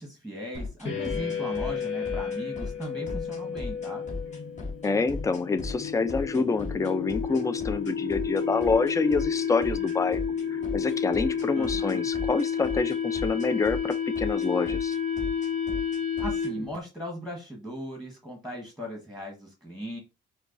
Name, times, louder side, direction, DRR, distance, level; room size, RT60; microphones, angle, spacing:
voice 1, 0.0-4.0 11.6-12.1 16.2-20.0, equal, ahead, 1.2 m, -38 dB
sound 1, 0.5-16.5, left 3 dB, 35° left, 1.4 m, -36 dB
sound 2, 0.8-16.8, left 7 dB, 70° left, 1.3 m, -31 dB
voice 2, 4.8-10.2 10.5-15.0, left 4 dB, 15° left, 0.4 m, -27 dB
4.5 x 2.2 x 2.5 m
cardioid pair, 90°, 20 cm